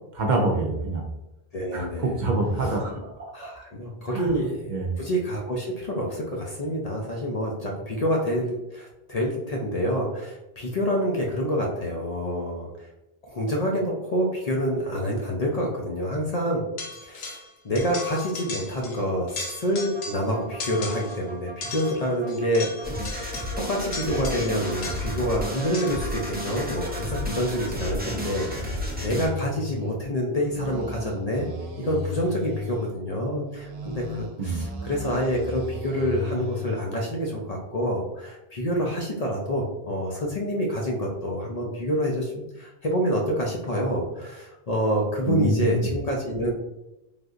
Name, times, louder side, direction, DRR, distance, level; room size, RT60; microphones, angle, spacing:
voice 1, 0.1-1.0 1.7-3.3 4.1-4.3 4.7-4.9 34.4-34.7 45.3-45.9, right 2 dB, 60° right, 0 dB, 0.6 m, -26 dB
voice 2, 1.5-2.2 3.3-12.7 13.3-16.6 17.0-23.1 23.6-31.5 31.8-46.5, equal, 50° left, -1 dB, 0.5 m, -27 dB
sound 1, 16.8-17.5 17.8-19.0 19.3-20.3 20.6-21.2 21.6-25.2 25.7-26.1, left 4 dB, 80° left, 0.9 m, -37 dB
sound 2, 19.8-27.4 27.7-30.0 30.4-32.9 33.5-36.9, left 1 dB, 85° right, 0.9 m, -37 dB
sound 3, 22.8-29.3, left 1 dB, 10° right, 0.5 m, -32 dB
3.4 x 2.6 x 2.3 m, 0.97 s
omnidirectional pair, 1.0 m